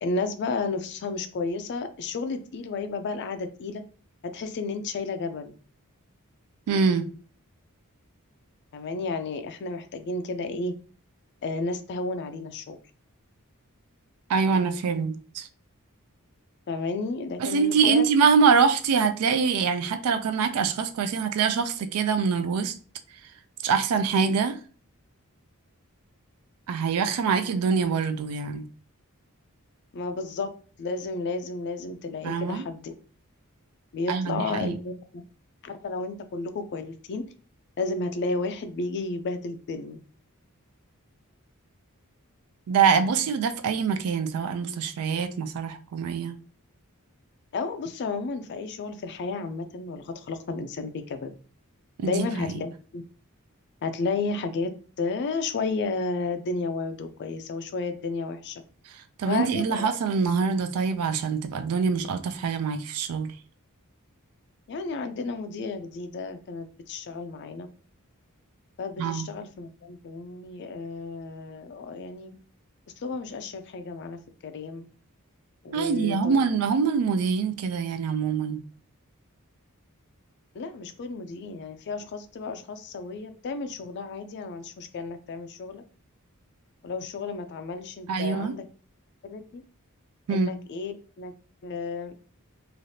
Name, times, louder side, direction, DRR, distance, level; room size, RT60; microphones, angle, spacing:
voice 1, 0.0-3.8 4.2-5.5 8.7-10.7 11.4-12.8 16.7-18.1 29.9-30.5 30.8-33.0 33.9-35.2 35.6-37.2 37.8-40.0 47.5-51.3 52.0-53.0 53.8-54.7 55.0-58.6 59.3-59.9 64.7-67.7 68.8-72.3 73.0-74.8 75.6-76.4 80.6-85.8 86.8-88.6 89.2-89.6 90.3-91.3 91.6-92.1, left 3 dB, 50° left, 0.4 m, -32 dB
voice 2, 6.7-7.1 14.3-15.5 17.4-22.7 23.6-24.6 26.7-28.6 32.2-32.6 34.1-34.8 42.7-46.4 52.0-52.5 58.9-63.3 69.0-69.3 75.7-78.6 88.1-88.5 90.3-90.5, right 5 dB, 90° right, 0.4 m, -24 dB
3.2 x 2.4 x 2.7 m
head